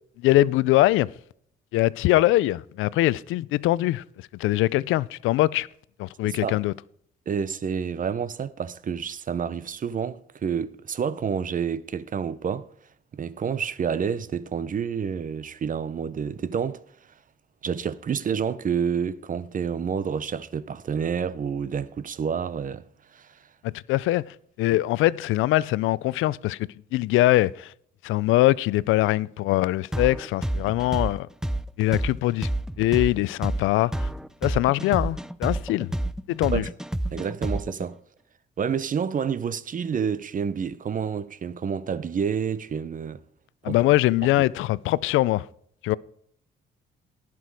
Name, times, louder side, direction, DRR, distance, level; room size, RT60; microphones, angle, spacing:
voice 1, 0.2-1.1 1.7-4.0 4.3-5.7 6.0-6.7 23.6-26.6 26.9-27.7 28.0-31.3 31.8-32.5 32.8-34.1 34.4-35.9 36.3-36.6 43.6-45.5 45.8-46.0, left 16 dB, 90° left, 0.4 m, -22 dB
voice 2, 6.2-6.6 7.3-12.7 13.1-16.8 17.6-22.8 23.1-23.3 36.5-36.7 37.1-38.0 38.6-43.2 43.7-43.8, right 7 dB, 40° right, 0.8 m, -29 dB
sound 1, 29.9-37.8, right 1 dB, 5° right, 0.5 m, -28 dB
18.0 x 6.0 x 4.8 m
cardioid pair, 90°, 20 cm